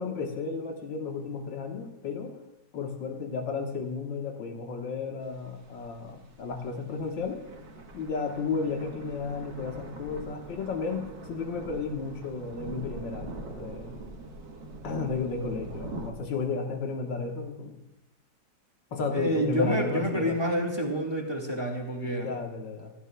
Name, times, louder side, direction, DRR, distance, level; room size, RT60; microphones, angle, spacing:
voice 1, 0.0-2.4 2.7-7.4 7.9-14.0 14.8-17.8 18.9-20.4 22.0-22.9, left 4 dB, 80° left, 3 dB, 2.0 m, -33 dB
sound 1, 5.2-16.1, right 2 dB, 65° right, 1.9 m, -43 dB
voice 2, 19.1-22.3, equal, 15° right, 1 dB, 1.6 m, -28 dB
16.5 x 14.0 x 2.3 m, 0.89 s
omnidirectional pair, 2.0 m